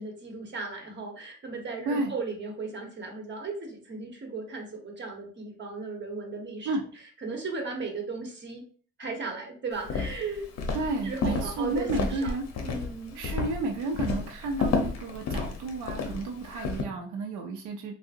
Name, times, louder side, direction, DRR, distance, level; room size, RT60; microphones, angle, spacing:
voice 1, 0.0-6.7 7.2-8.6 9.0-10.5 10.8-12.3 12.6-13.2, right 4 dB, 40° right, 1 dB, 1.0 m, -36 dB
Walk footsteps, 9.8-16.8, left 4 dB, 60° left, 0.7 m, -32 dB
voice 2, 10.7-12.4 13.1-18.0, right 3 dB, 85° right, 2 dB, 0.5 m, -32 dB
3.6 x 2.0 x 2.5 m, 0.43 s
cardioid pair, 90°, 30 cm